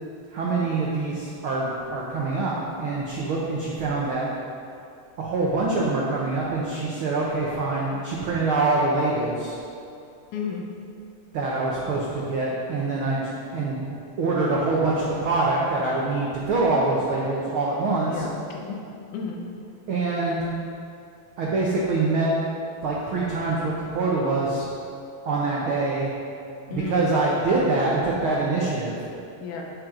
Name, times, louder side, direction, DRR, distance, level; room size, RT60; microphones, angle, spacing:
voice 1, 0.3-4.3 5.2-9.5 11.3-13.8 14.2-18.2 19.9-20.5 21.4-22.3 22.8-24.6 25.2-26.1 26.7-29.0, right 3 dB, 80° right, -4 dB, 1.1 m, -25 dB
voice 2, 10.3-10.7 18.1-18.8 19.1-19.4 26.7-27.1 29.4-29.6, left 5 dB, 75° left, 0 dB, 2.4 m, -32 dB
9.1 x 7.4 x 3.8 m, 2.5 s
omnidirectional pair, 3.7 m